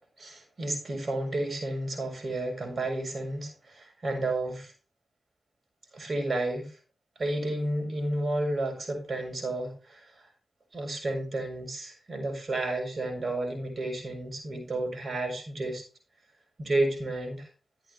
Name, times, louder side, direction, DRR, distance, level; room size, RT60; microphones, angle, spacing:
voice 1, 0.2-4.7 5.9-6.7 7.2-10.0 10.7-15.8 16.6-17.5, right 2 dB, 50° right, 4 dB, 7.0 m, -31 dB
13.0 x 9.0 x 3.4 m, 0.34 s
cardioid pair, 55°, 0 cm